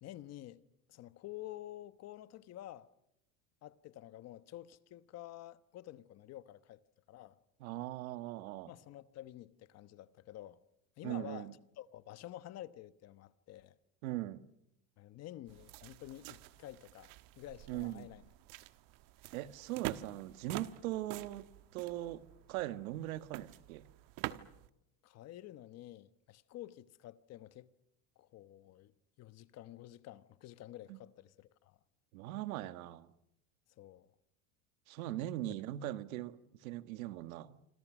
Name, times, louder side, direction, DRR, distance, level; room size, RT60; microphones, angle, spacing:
voice 1, 0.0-0.6 0.9-2.9 3.6-6.8 7.1-7.4 8.7-10.6 11.0-11.5 11.8-13.7 15.0-18.2 25.0-27.7 28.2-31.8 33.8-34.1 35.5-35.6, left 14 dB, 40° left, 1.1 m, -50 dB
voice 2, 7.6-8.7 11.0-11.5 14.0-14.4 17.7-18.1 19.3-21.5 21.7-22.2 22.5-23.8 30.9-31.0 32.1-33.1 34.9-37.6, right 15 dB, 90° right, 1.6 m, -40 dB
sound 1, 15.5-24.7, right 16 dB, 55° right, 1.3 m, -47 dB
27.5 x 26.5 x 6.2 m
cardioid pair, 150°, 40 cm